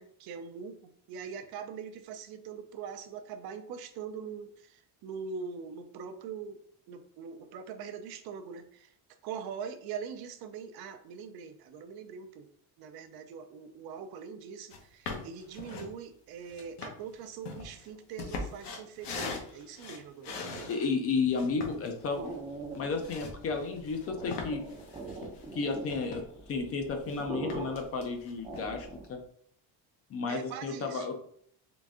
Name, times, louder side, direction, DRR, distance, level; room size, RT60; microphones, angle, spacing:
voice 1, 0.0-6.6 6.9-8.9 9.2-12.5 12.8-20.7 30.3-31.1, right 6 dB, 60° right, 8 dB, 0.6 m, -42 dB
sound 1, 14.7-14.8 15.1-15.9 16.5-20.9 21.3-26.5 26.8-27.2 27.5-28.7, left 4 dB, 70° left, 1.0 m, -41 dB
voice 2, 20.7-22.3 22.8-24.6 25.5-26.2 26.5-29.2 30.1-31.1, left 4 dB, 35° left, 5 dB, 0.5 m, -32 dB
sound 2, 21.4-29.2, right 2 dB, 10° right, 0.5 m, -43 dB
3.8 x 2.5 x 3.5 m, 0.62 s
cardioid pair, 150°, 42 cm